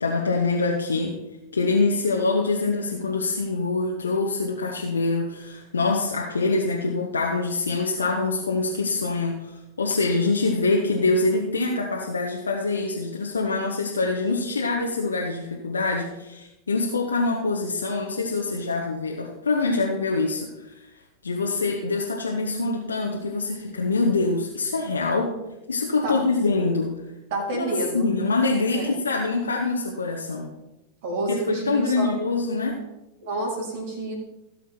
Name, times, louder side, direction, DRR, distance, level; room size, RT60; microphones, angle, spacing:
voice 1, 0.0-1.2 1.5-20.7 21.2-25.4 25.7-26.9 27.5-27.7 27.9-30.5 31.3-32.8, left 3 dB, 75° left, -1 dB, 1.2 m, -25 dB
voice 2, 27.3-28.1 28.7-28.9 31.0-32.1 33.2-34.1, right 2 dB, 55° right, -3 dB, 3.6 m, -29 dB
16.5 x 7.1 x 4.4 m, 0.97 s
figure-of-eight pair, 90°, 0 cm